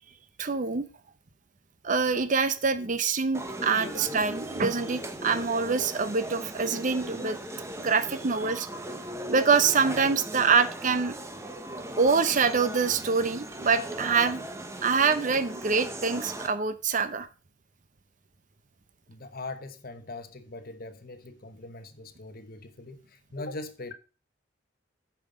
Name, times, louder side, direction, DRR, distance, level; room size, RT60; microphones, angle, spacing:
voice 1, 0.4-0.8 1.8-7.4 7.8-8.7 9.3-11.1 12.0-14.4 14.8-17.3, right 5 dB, 40° right, 0.6 m, -25 dB
sound 1, 3.3-16.5, right 1 dB, 15° right, 0.9 m, -38 dB
voice 2, 19.1-23.9, left 2 dB, 45° left, 1.0 m, -41 dB
8.8 x 5.8 x 5.0 m
head